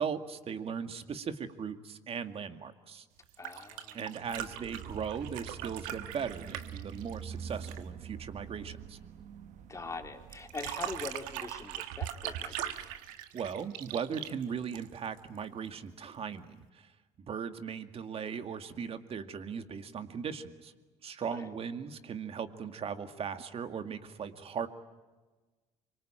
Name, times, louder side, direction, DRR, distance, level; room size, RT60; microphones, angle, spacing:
voice 1, 0.0-3.1 3.9-9.0 13.3-16.9 17.3-20.7 21.0-24.7, right 7 dB, 45° right, 9 dB, 2.2 m, -38 dB
sound 1, 3.2-7.9 10.3-15.2 16.6-16.7, right 12 dB, 90° right, 1.5 m, -41 dB
voice 2, 3.4-4.2 9.7-12.9 21.2-21.5, left 3 dB, 20° left, 4 dB, 3.4 m, -43 dB
sound 2, 4.3-13.0, right 7 dB, 65° right, 1.5 m, -47 dB
25.5 x 24.0 x 9.0 m, 1.2 s
supercardioid pair, 90°, 14 cm